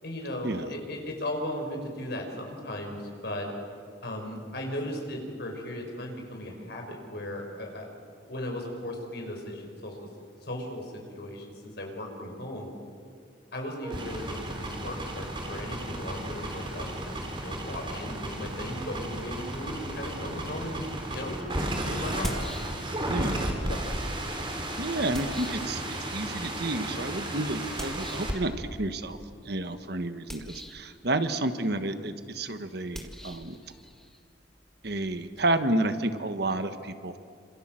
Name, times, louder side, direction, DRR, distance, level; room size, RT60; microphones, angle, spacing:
voice 1, 0.0-3.5 4.0-7.9 8.3-10.0 10.4-12.7 13.5-21.4 21.9-22.4 23.2-24.1, left 1 dB, 60° left, 2 dB, 5.8 m, -37 dB
sound 1, 13.8-28.3, right 1 dB, 25° right, 3.8 m, -34 dB
Water Bottle, 22.2-23.1 23.4-26.3 27.8-28.4 30.2-30.9 32.9-35.5, equal, ahead, 2.1 m, -39 dB
voice 2, 23.1-23.4 24.8-25.8 26.1-29.2 29.4-33.6 34.8-37.2, right 2 dB, 55° right, 9 dB, 1.3 m, -30 dB
27.5 x 27.0 x 7.7 m, 2.3 s
head